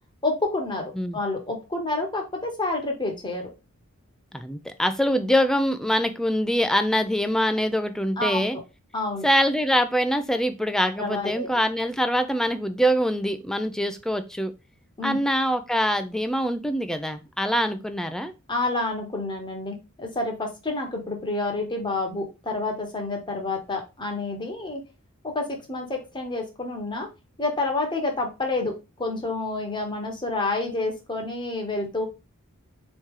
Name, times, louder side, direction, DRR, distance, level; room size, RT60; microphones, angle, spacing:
voice 1, 0.2-0.8 1.1-3.5 8.2-8.5 8.9-9.2 11.0-11.5 15.0-15.2 18.5-24.8 25.3-27.1 27.4-32.1, left 2 dB, 20° left, 2 dB, 1.1 m, -28 dB
voice 2, 4.3-8.6 9.2-14.5 15.0-18.3, equal, ahead, 8 dB, 0.4 m, -24 dB
4.2 x 3.1 x 3.7 m, 0.28 s
head